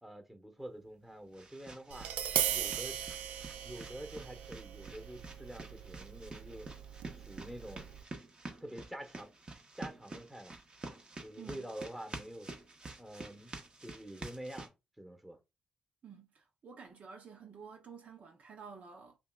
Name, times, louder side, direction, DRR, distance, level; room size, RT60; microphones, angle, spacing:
voice 1, 0.0-2.1 2.5-3.0 3.6-6.7 7.2-7.9 8.6-9.3 9.8-10.6 11.2-12.5 13.0-13.5 13.8-15.4, right 1 dB, 5° right, 1.3 m, -47 dB
sound 1, 0.7-14.7, right 2 dB, 35° right, 1.3 m, -49 dB
Tap, 1.9-8.0, right 10 dB, 80° right, 0.4 m, -38 dB
voice 2, 11.4-11.7 16.0-19.2, right 6 dB, 60° right, 0.9 m, -51 dB
5.5 x 2.5 x 2.4 m
supercardioid pair, 50°, 3 cm